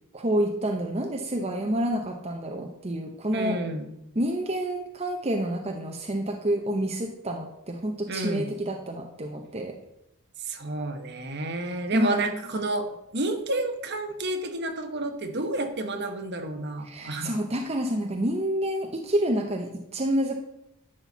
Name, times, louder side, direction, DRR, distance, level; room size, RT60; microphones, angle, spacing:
voice 1, 0.1-3.6 4.1-9.7 11.9-12.3 16.8-20.3, right 1 dB, 30° right, 3 dB, 0.7 m, -28 dB
voice 2, 3.3-3.9 8.1-8.5 10.4-12.9 13.1-17.3, right 2 dB, 50° right, 6 dB, 1.1 m, -30 dB
11.0 x 4.3 x 7.1 m, 0.86 s
head